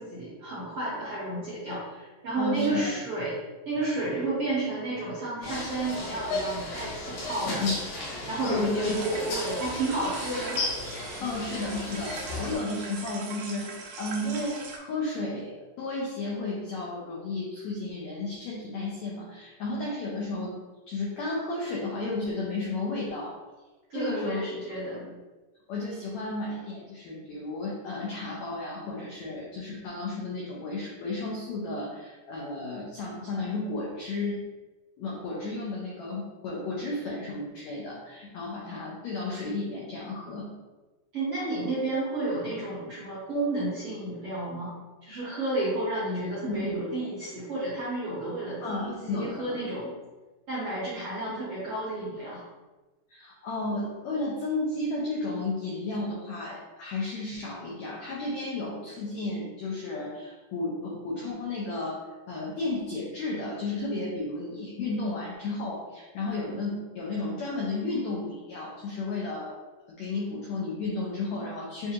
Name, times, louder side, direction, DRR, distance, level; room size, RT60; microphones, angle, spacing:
voice 1, 0.0-3.3 3.6-7.6 8.3-10.8 23.9-25.0 41.1-44.7 45.0-49.9 50.5-52.5, right 2 dB, 70° right, -9 dB, 1.3 m, -31 dB
voice 2, 2.4-2.9 7.4-7.7 8.5-9.0 11.2-20.6 20.9-23.4 23.9-24.4 24.9-25.1 25.7-34.4 35.0-40.5 46.4-46.8 48.6-49.6 53.1-69.6 69.9-71.9, left 2 dB, 90° left, -4 dB, 1.5 m, -33 dB
sound 1, 5.4-12.5, left 2 dB, 75° left, 2.7 m, -35 dB
sound 2, 8.8-14.8, right 4 dB, 85° right, 1.6 m, -42 dB
7.1 x 2.4 x 2.8 m, 1.2 s
omnidirectional pair, 4.0 m